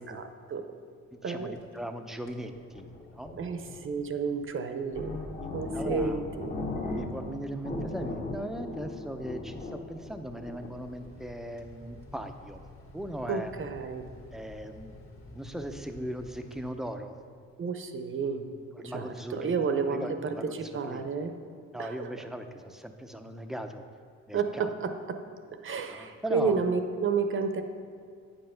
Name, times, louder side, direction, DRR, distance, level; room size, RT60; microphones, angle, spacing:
voice 1, 0.1-0.7 1.2-1.5 3.3-5.2 5.5-6.5 13.3-14.1 17.6-18.5 18.8-21.3 21.8-22.1 24.3-25.2 25.6-27.6, right 5 dB, 45° right, 7 dB, 0.8 m, -31 dB
voice 2, 1.1-3.3 5.7-6.2 6.9-12.6 12.9-13.5 14.3-15.0 15.3-17.2 18.7-19.6 19.9-21.0 21.7-23.9 24.3-24.7 25.9-26.6, right 1 dB, ahead, 6 dB, 0.6 m, -38 dB
sound 1, 1.4-1.9 2.2-2.5 3.0-17.3, left 1 dB, 45° left, 1.6 m, -53 dB
sound 2, 2.3-4.1 4.6-4.7 4.9-7.4 7.6-10.7, left 2 dB, 25° left, 1.0 m, -37 dB
8.7 x 5.5 x 5.7 m, 2.1 s
cardioid pair, 90°, 30 cm